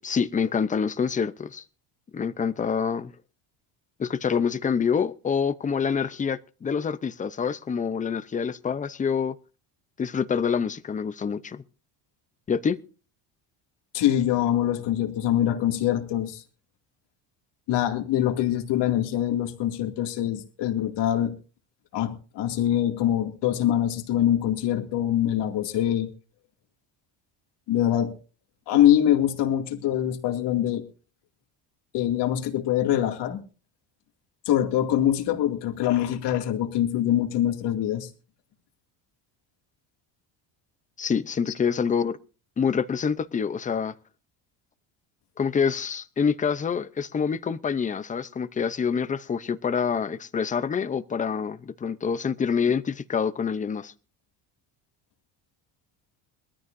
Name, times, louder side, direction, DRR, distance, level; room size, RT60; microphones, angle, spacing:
voice 1, 0.0-1.6 2.1-3.1 4.0-9.3 10.0-11.6 12.5-12.8 41.0-42.2 42.6-43.9 45.4-53.9, left 6 dB, 15° left, 0.6 m, -26 dB
voice 2, 13.9-16.4 17.7-21.3 21.9-26.1 27.7-28.1 28.7-30.8 31.9-33.4 34.5-38.1, left 11 dB, 65° left, 2.3 m, -24 dB
22.0 x 14.0 x 2.6 m
cardioid pair, 145°, 45 cm